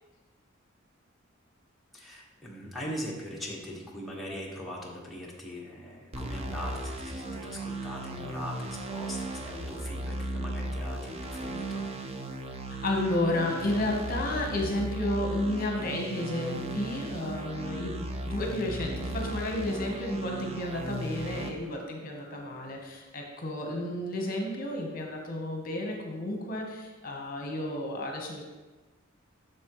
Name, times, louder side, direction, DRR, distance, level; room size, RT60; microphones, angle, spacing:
voice 1, 1.9-11.8, equal, ahead, -5 dB, 1.2 m, -40 dB
sound 1, 6.1-21.5, right 1 dB, 30° right, 0.6 m, -36 dB
voice 2, 12.8-28.4, left 1 dB, 45° left, 1 dB, 1.0 m, -32 dB
8.4 x 6.5 x 3.0 m, 1.2 s
head